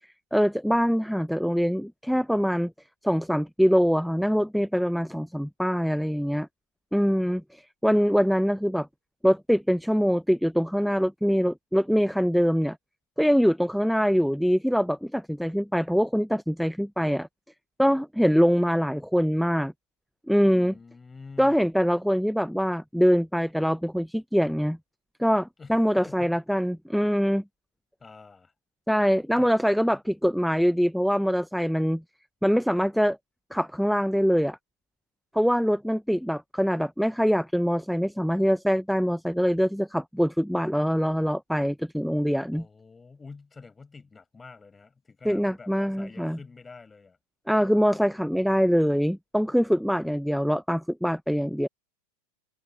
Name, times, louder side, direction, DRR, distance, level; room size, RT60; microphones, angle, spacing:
voice 1, 0.3-2.7 3.0-6.5 6.9-8.9 9.2-12.8 13.2-17.3 17.8-19.7 20.3-20.7 21.4-24.8 25.2-27.4 28.9-32.0 32.4-33.2 33.5-34.6 35.3-42.6 45.2-46.4 47.5-51.7, equal, ahead, 0.7 m, -24 dB
voice 2, 20.5-21.7 25.6-26.7 28.0-28.5 29.4-29.5 29.9-30.0 42.5-47.2, left 4 dB, 15° left, 5.1 m, -47 dB
hypercardioid pair, 105°, 0 cm